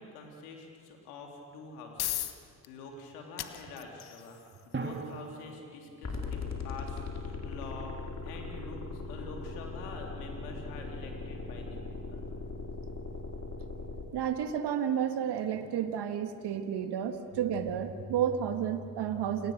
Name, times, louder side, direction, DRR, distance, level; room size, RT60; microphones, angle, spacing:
voice 1, 0.0-7.9 8.2-11.8 12.1-12.3, left 3 dB, 80° left, 1 dB, 3.4 m, -46 dB
sound 1, 1.5-16.4, left 12 dB, 60° left, 1.4 m, -46 dB
Drum, 4.7-7.0, right 3 dB, 25° right, 3.0 m, -41 dB
sound 2, 6.0-14.0, left 4 dB, 35° left, 4.4 m, -39 dB
voice 2, 14.1-19.5, right 8 dB, 60° right, 8 dB, 1.9 m, -31 dB
28.5 x 20.0 x 6.7 m, 2.1 s
hypercardioid pair, 45°, 44 cm